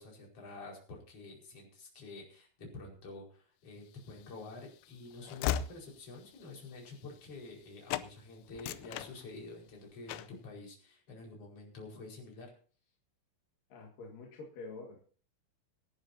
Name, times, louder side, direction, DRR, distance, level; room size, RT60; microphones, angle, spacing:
voice 1, 0.0-12.5, left 3 dB, 30° left, -1 dB, 5.5 m, -48 dB
Train / Slam, 4.0-7.6 7.9-8.1 8.5-9.7 10.1-10.4, left 11 dB, 90° left, 3.4 m, -39 dB
voice 2, 13.7-15.0, left 3 dB, 55° left, 0 dB, 3.0 m, -47 dB
24.5 x 11.0 x 2.7 m, 0.42 s
omnidirectional pair, 5.7 m